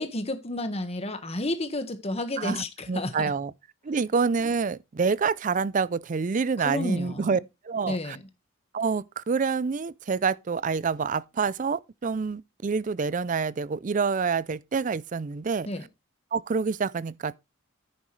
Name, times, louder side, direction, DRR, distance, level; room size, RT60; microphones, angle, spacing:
voice 1, 0.0-3.3 6.6-7.4 7.9-8.2 15.6-15.9, left 1 dB, 30° left, 1.5 m, -31 dB
voice 2, 2.4-3.5 3.8-7.4 7.6-8.2 8.7-15.7 16.3-17.4, right 5 dB, 40° right, 0.4 m, -27 dB
10.0 x 9.4 x 3.2 m
head